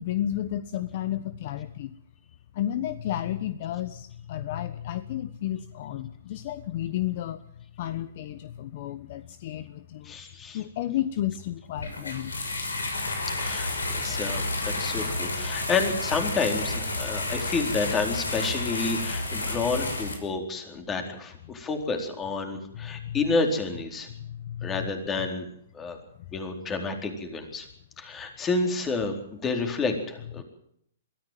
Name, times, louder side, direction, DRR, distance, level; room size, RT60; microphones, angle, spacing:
voice 1, 0.0-1.9 2.5-7.4 7.8-10.1 10.5-12.3 22.7-23.2 24.1-24.9 30.4-30.5, left 12 dB, 50° left, 14 dB, 1.0 m, -32 dB
voice 2, 10.0-10.6 13.3-13.7 13.9-24.1 24.6-25.5 25.7-26.0 26.3-27.7 28.0-30.4, left 4 dB, 20° left, 5 dB, 4.3 m, -29 dB
sound 1, 11.8-20.1, left 2 dB, 85° left, 5.9 m, -30 dB
22.5 x 14.5 x 9.2 m, 0.70 s
hypercardioid pair, 120°, 0 cm